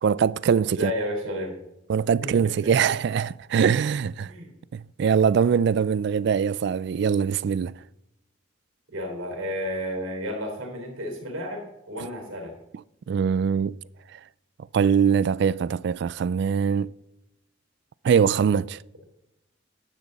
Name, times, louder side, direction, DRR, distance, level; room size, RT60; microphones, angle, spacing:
voice 1, 0.0-0.9 1.9-4.3 4.7-7.7 12.0-12.1 13.1-13.8 14.1-14.2 14.7-16.9 18.0-18.8, right 7 dB, 55° right, 0.3 m, -22 dB
voice 2, 0.7-1.6 2.2-2.7 4.2-4.5 8.9-12.5, equal, 85° right, 4.1 m, -32 dB
13.5 x 10.5 x 4.1 m
head